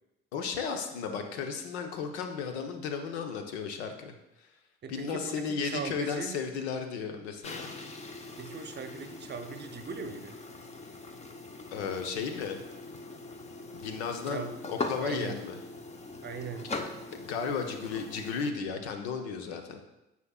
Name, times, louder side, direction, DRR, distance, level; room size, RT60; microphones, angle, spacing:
voice 1, 0.3-4.2 4.9-7.7 11.7-12.6 13.7-15.6 17.2-19.8, left 5 dB, 70° left, 6 dB, 0.9 m, -34 dB
voice 2, 4.8-6.4 8.4-10.4 14.3-14.6 15.0-15.4 16.2-16.7, right 5 dB, 30° right, 7 dB, 0.8 m, -39 dB
sound 1, 7.4-18.5, left 3 dB, 20° left, 0.7 m, -41 dB
9.5 x 6.0 x 2.4 m, 0.96 s
figure-of-eight pair, 60°, 33 cm